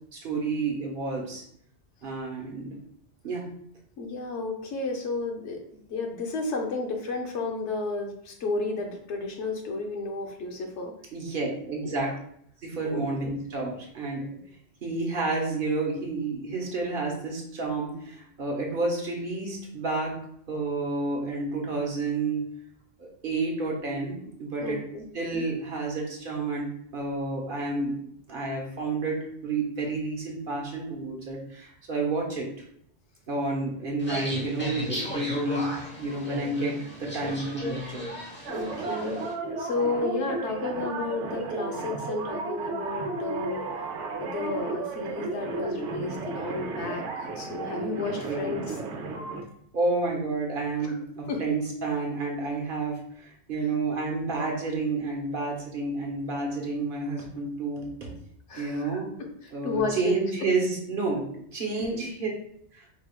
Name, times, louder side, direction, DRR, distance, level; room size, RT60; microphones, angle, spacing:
voice 1, 0.1-1.4 2.0-2.8 3.2-3.4 11.1-12.1 12.6-14.2 14.8-20.2 20.5-22.4 23.0-24.8 25.1-26.7 26.9-32.5 33.3-35.7 36.0-38.0 48.3-48.5 49.7-58.1 58.6-59.1 59.5-62.3 62.7-62.9, right 3 dB, 50° right, 0 dB, 1.1 m, -30 dB
voice 2, 4.0-5.6 5.9-10.9 11.8-12.1 12.8-13.0 24.6-25.1 38.5-39.2 39.6-43.7 44.2-48.8 50.8-51.0 51.3-51.4 58.5-60.2 61.8-62.1, left 3 dB, 75° left, 3 dB, 1.1 m, -32 dB
sound 1, 34.0-39.3, left 1 dB, 10° left, 0.7 m, -35 dB
sound 2, 38.5-49.4, right 3 dB, 90° right, 1.0 m, -34 dB
4.8 x 3.4 x 2.3 m, 0.68 s
omnidirectional pair, 1.2 m